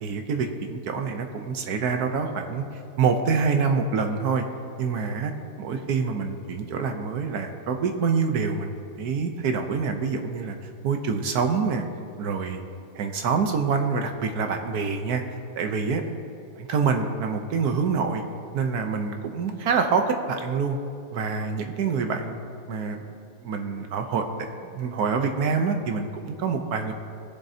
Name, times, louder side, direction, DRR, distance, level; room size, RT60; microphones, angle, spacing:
voice 1, 0.0-2.6 3.0-4.4 4.8-5.3 5.6-10.6 10.8-11.8 12.2-12.6 13.0-15.2 15.5-16.0 16.6-18.2 18.5-20.8 21.1-22.4 22.7-23.0 23.4-26.9, right 5 dB, 75° right, 5 dB, 1.3 m, -26 dB
20.0 x 7.4 x 2.8 m, 2.6 s
omnidirectional pair, 1.7 m